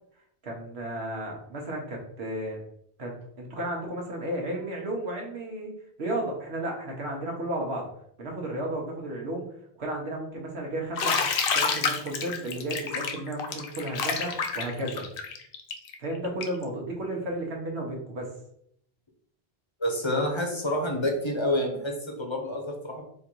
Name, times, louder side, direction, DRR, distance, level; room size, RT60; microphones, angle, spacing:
voice 1, 0.4-2.6 3.0-5.7 6.0-7.9 8.2-9.5 9.8-11.2 11.5-15.1 16.0-18.3, right 1 dB, 85° right, 0 dB, 1.4 m, -33 dB
Bathtub (filling or washing), 11.0-16.6, left 5 dB, 65° left, 0.8 m, -28 dB
voice 2, 19.8-23.0, left 1 dB, 30° left, 1 dB, 0.8 m, -28 dB
4.4 x 2.6 x 4.4 m, 0.70 s
omnidirectional pair, 1.1 m